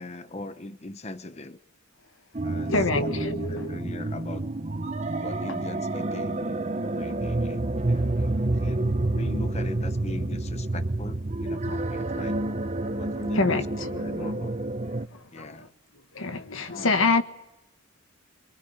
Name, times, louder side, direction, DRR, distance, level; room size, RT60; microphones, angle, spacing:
voice 1, 0.0-1.6 2.4-3.1 3.5-4.5 5.1-12.4 13.0-13.6 14.0-14.5 15.3-15.7 16.7-17.1, left 2 dB, 30° left, 11 dB, 0.9 m, -40 dB
sound 1, 2.3-15.1, right 2 dB, 35° right, 0.9 m, -29 dB
voice 2, 2.6-3.8 13.0-14.3 15.1-15.7 16.1-17.2, left 3 dB, 75° left, 9 dB, 1.6 m, -27 dB
25.0 x 23.5 x 8.8 m, 0.95 s
head